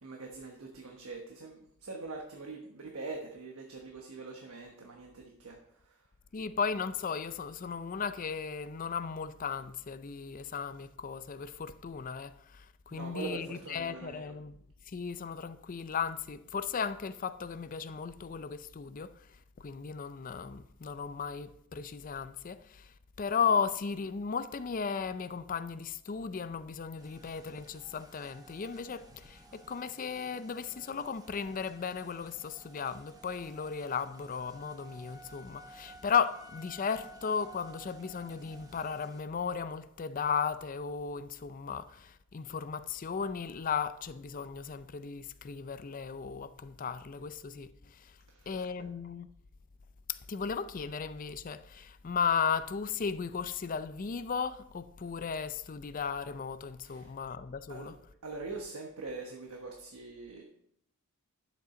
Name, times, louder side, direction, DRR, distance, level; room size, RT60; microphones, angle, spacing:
voice 1, 0.0-5.6 5.8-6.0 12.9-14.3 48.3-48.7 56.8-57.1 57.7-57.9 58.2-60.4, right 3 dB, 75° right, 1.2 m, -43 dB
voice 2, 6.3-14.6 14.9-19.1 19.6-48.1 48.5-49.3 50.1-58.0, left 6 dB, 35° left, 0.4 m, -35 dB
sound 1, 27.0-39.2, right 1 dB, 15° right, 0.8 m, -55 dB
11.0 x 7.4 x 3.8 m
head